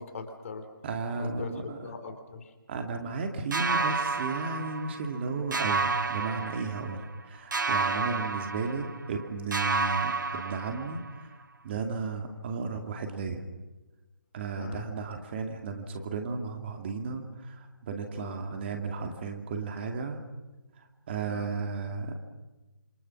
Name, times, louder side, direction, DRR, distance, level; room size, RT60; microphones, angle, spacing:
voice 1, 0.0-0.7 1.1-2.5 8.0-8.2 14.6-14.9 18.2-18.4 21.3-21.6, left 4 dB, 40° left, 8 dB, 3.2 m, -41 dB
voice 2, 0.8-1.9 2.7-11.3 11.6-13.4 14.3-20.2 20.8-22.3, right 4 dB, 30° right, 4 dB, 2.5 m, -34 dB
sound 1, 3.5-5.2 5.5-7.2 7.5-9.2 9.5-11.2, right 4 dB, 65° right, 1.3 m, -30 dB
28.0 x 27.5 x 6.1 m, 1.2 s
figure-of-eight pair, 150°, 11 cm